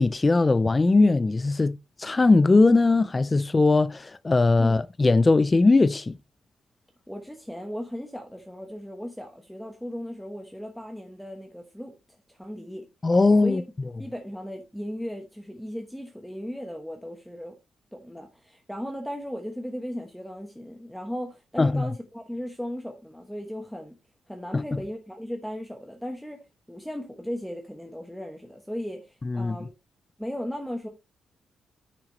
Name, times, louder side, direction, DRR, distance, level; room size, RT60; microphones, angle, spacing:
voice 1, 0.0-6.2 13.0-13.6 21.6-21.9 24.5-24.6 29.3-29.6, left 3 dB, 20° left, 0.3 m, -20 dB
voice 2, 7.1-11.9 12.3-12.8 13.4-13.6 14.0-17.6 17.9-24.0 24.3-26.4 26.7-29.7 30.2-30.9, equal, ahead, 1.1 m, -36 dB
10.0 x 5.9 x 3.0 m
wide cardioid pair, 170°, 0 cm